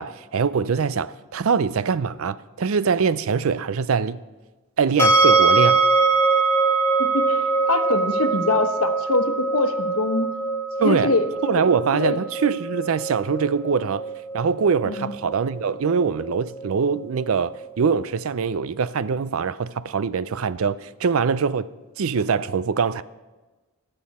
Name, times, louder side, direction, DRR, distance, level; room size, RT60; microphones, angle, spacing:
voice 1, 0.0-4.2 4.8-5.8 10.8-11.1 11.4-14.0 14.3-21.7 22.0-23.0, right 5 dB, 70° right, 0.5 m, -23 dB
sound 1, 5.0-18.0, right 3 dB, 10° left, 0.8 m, -23 dB
voice 2, 7.0-10.3 10.8-11.6 11.9-12.2 14.8-15.1, left 3 dB, 75° left, 1.1 m, -24 dB
23.0 x 7.8 x 4.2 m
head